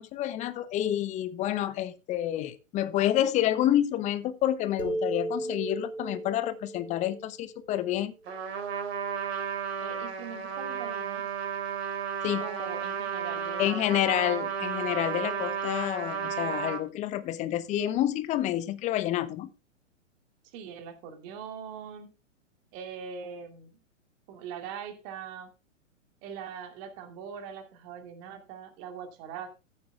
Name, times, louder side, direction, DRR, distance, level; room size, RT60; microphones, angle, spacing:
voice 1, 0.0-8.1 12.2-12.4 13.6-19.5, left 12 dB, 20° left, 14 dB, 0.8 m, -28 dB
sound 1, 4.8-8.3, right 2 dB, 90° right, 3.2 m, -36 dB
Trumpet, 8.2-16.8, right 7 dB, 55° right, 3.5 m, -33 dB
voice 2, 9.8-11.2 12.4-14.0 20.4-22.1 22.7-23.8 24.3-25.5 26.2-29.6, right 7 dB, 35° right, 7 dB, 2.5 m, -42 dB
14.5 x 7.7 x 3.4 m, 0.29 s
figure-of-eight pair, 115°, 38 cm